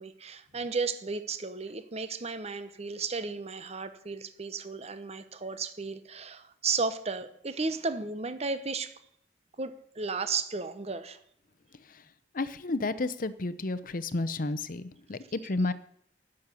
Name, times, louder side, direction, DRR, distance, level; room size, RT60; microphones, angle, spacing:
voice 1, 0.0-8.9 9.6-11.2, right 4 dB, 35° right, 11 dB, 0.9 m, -34 dB
voice 2, 12.3-15.7, left 2 dB, 50° left, 14 dB, 0.8 m, -31 dB
12.5 x 6.6 x 9.8 m, 0.71 s
head